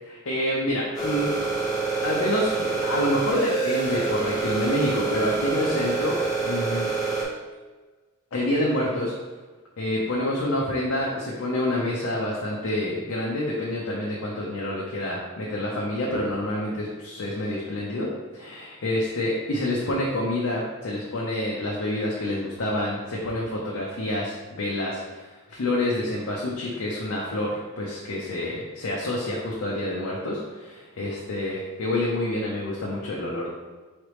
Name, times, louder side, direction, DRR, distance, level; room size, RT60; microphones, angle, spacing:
voice 1, 0.0-1.4 2.0-6.9 8.3-9.1 9.8-33.5, left 1 dB, 75° left, -4 dB, 0.6 m, -27 dB
sound 1, 0.9-7.2, right 4 dB, 15° left, 1.0 m, -27 dB
3.9 x 3.2 x 3.1 m, 1.3 s
head